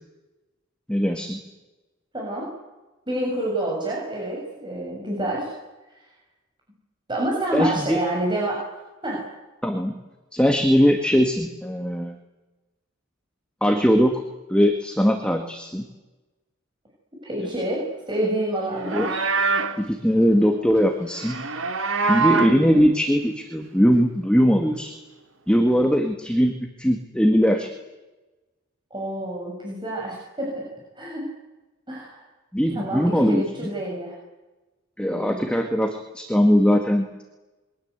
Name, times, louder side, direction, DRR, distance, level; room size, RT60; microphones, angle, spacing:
voice 1, 0.9-1.4 7.5-8.0 9.6-10.0 10.3-12.2 13.6-14.2 14.5-15.8 18.9-19.1 19.8-21.4 22.0-24.9 25.5-27.7 32.5-33.4 35.0-37.2, equal, 5° left, 4 dB, 1.9 m, -20 dB
voice 2, 2.1-2.5 3.1-5.5 5.9-6.1 7.1-8.6 9.0-9.3 17.2-19.2 19.5-19.6 22.4-22.9 28.9-30.6 31.0-31.2 31.9-32.2 32.7-34.2 35.0-35.5, right 1 dB, 25° right, -3 dB, 7.0 m, -28 dB
Livestock farm animals working animals, 18.7-19.8 21.1-22.6, right 4 dB, 75° right, 1.7 m, -24 dB
27.5 x 23.0 x 8.2 m, 1.1 s
head